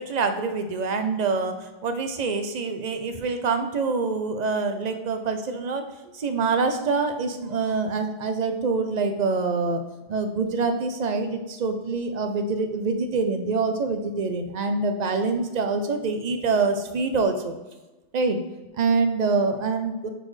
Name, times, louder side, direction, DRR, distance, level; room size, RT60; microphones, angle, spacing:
voice 1, 0.0-5.9 6.1-17.5 18.1-18.4 18.7-20.1, right 4 dB, 45° right, 8 dB, 0.7 m, -25 dB
9.0 x 4.2 x 3.2 m, 1.1 s
omnidirectional pair, 1.2 m